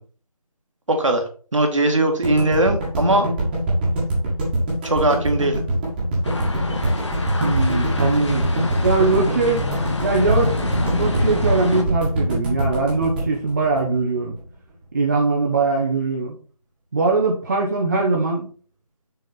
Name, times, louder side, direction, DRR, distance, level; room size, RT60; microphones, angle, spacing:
voice 1, 0.9-3.2 4.8-5.6, right 1 dB, 55° right, 4 dB, 1.8 m, -20 dB
sound 1, 2.2-14.4, right 1 dB, 15° right, 1.7 m, -23 dB
sound 2, 6.2-11.8, left 2 dB, 50° left, 1.3 m, -26 dB
voice 2, 7.4-8.5 8.8-9.6 10.0-14.4 14.9-16.4 16.9-18.5, right 3 dB, 30° right, -2 dB, 1.0 m, -21 dB
6.7 x 4.7 x 4.1 m, 0.41 s
figure-of-eight pair, 160°, 19 cm